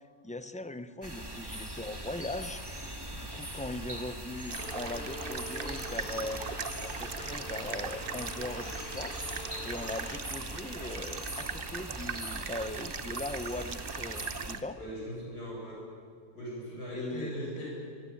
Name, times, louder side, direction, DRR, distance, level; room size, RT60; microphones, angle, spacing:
voice 1, 0.0-2.7 3.1-6.4 6.8-9.2 9.6-14.8 16.9-17.3, left 2 dB, 10° left, 11 dB, 0.3 m, -40 dB
sound 1, 1.0-14.6, right 1 dB, 15° right, 2.2 m, -41 dB
sound 2, 4.5-14.6, right 7 dB, 45° right, 0.8 m, -40 dB
sound 3, 4.6-10.2, left 2 dB, 35° left, 1.1 m, -45 dB
voice 2, 14.7-15.9 16.3-17.7, equal, 75° left, -4 dB, 8.2 m, -39 dB
24.5 x 23.0 x 8.7 m, 2.2 s
omnidirectional pair, 1.7 m